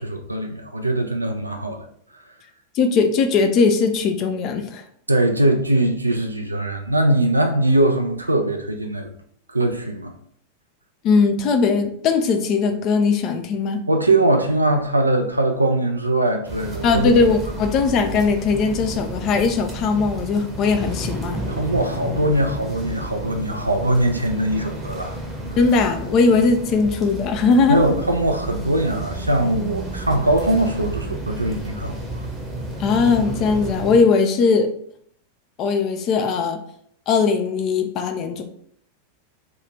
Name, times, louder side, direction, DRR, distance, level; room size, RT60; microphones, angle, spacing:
voice 1, 0.0-1.8 5.1-9.1 9.5-10.1 13.9-17.2 21.5-25.2 27.7-32.3, right 1 dB, 85° right, 4 dB, 0.3 m, -21 dB
voice 2, 2.7-4.8 11.0-13.8 16.8-21.5 25.6-27.8 32.8-34.7 35.6-36.6 37.1-38.4, left 4 dB, 35° left, 6 dB, 0.4 m, -19 dB
sound 1, 16.5-34.0, right 2 dB, 15° right, 0.8 m, -31 dB
2.9 x 2.3 x 3.1 m, 0.65 s
figure-of-eight pair, 90°, 0 cm